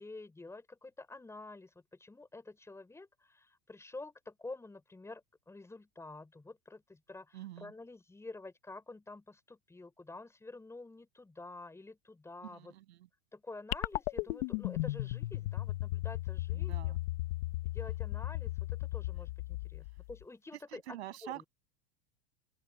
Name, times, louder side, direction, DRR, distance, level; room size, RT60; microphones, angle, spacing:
voice 1, 0.0-12.7 13.3-16.9 17.6-21.0 21.2-21.4, left 2 dB, 10° left, 5.2 m, -49 dB
voice 2, 7.3-7.7 12.4-13.1 16.5-17.0 20.7-21.5, right 15 dB, 80° right, 7.8 m, -46 dB
sound 1, 13.7-20.2, left 18 dB, 65° left, 1.3 m, -36 dB
open air
supercardioid pair, 130°, 32 cm